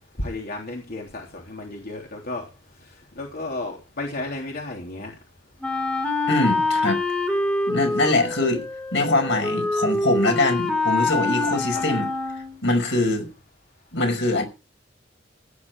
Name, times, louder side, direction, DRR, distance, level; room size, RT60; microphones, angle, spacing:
voice 1, 0.2-2.4 3.2-5.1 11.7-11.8, left 2 dB, 55° left, 3.4 m, -33 dB
Wind instrument woodwind instrument, 5.6-12.6, left 2 dB, 5° left, 2.7 m, -25 dB
voice 2, 6.3-7.0 7.7-8.6 8.9-12.1 12.6-13.3 13.9-14.4, left 2 dB, 75° left, 5.6 m, -23 dB
16.5 x 10.0 x 4.7 m
head